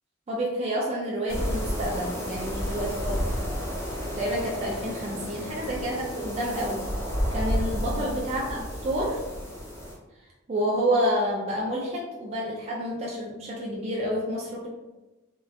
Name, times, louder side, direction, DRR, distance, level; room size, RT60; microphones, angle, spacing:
voice 1, 0.3-3.3 4.2-6.8 7.3-9.2 10.5-14.7, equal, 30° right, -4 dB, 0.3 m, -29 dB
sound 1, 1.3-10.0, equal, 10° left, 0.6 m, -31 dB
2.7 x 2.1 x 2.3 m, 1.1 s
head